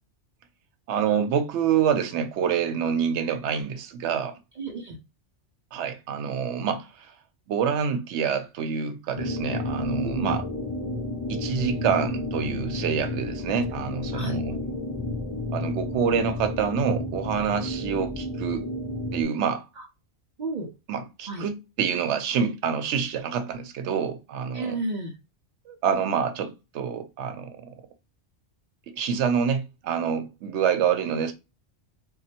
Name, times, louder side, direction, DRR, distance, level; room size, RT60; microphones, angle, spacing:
voice 1, 0.9-4.3 5.7-7.1 7.5-10.4 11.3-14.6 15.5-18.7 19.1-19.6 20.9-24.8 25.7-27.7 28.9-31.3, right 7 dB, 75° right, 0.9 m, -27 dB
voice 2, 4.6-5.0 10.0-10.4 14.1-14.4 20.4-20.7 21.3-21.5 24.5-25.1, right 2 dB, 55° right, 0.5 m, -31 dB
sound 1, 9.1-19.2, left 2 dB, 30° left, 0.6 m, -31 dB
3.0 x 2.2 x 2.8 m
omnidirectional pair, 1.2 m